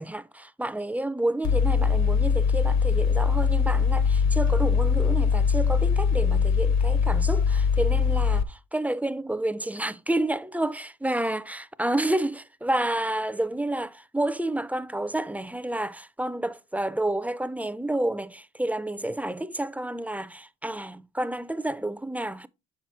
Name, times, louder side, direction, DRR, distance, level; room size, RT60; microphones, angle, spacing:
voice 1, 0.0-22.5, right 1 dB, 5° right, 0.3 m, -29 dB
Mechanical fan, 1.4-8.4, left 6 dB, 65° left, 0.9 m, -22 dB
7.2 x 5.9 x 3.1 m
cardioid pair, 90°, 30 cm